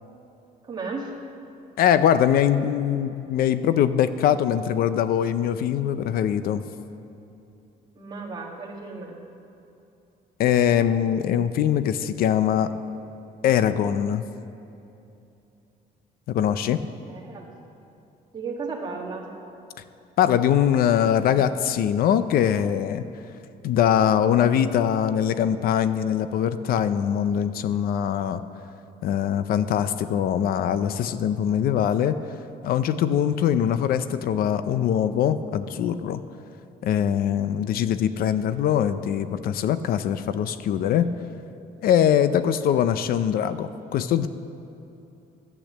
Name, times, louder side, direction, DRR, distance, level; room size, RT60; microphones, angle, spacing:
voice 1, 0.6-1.1 7.9-9.2 17.1-17.5 18.3-19.3, right 4 dB, 25° right, -1 dB, 1.7 m, -34 dB
voice 2, 1.8-6.6 10.4-12.7 13.4-14.2 16.3-16.8 20.2-23.0 23.6-28.4 29.0-32.2 32.6-36.2 36.8-41.1 41.8-44.3, left 9 dB, 70° left, 12 dB, 0.5 m, -22 dB
12.0 x 8.5 x 7.4 m, 2.8 s
cardioid pair, 175°, 16 cm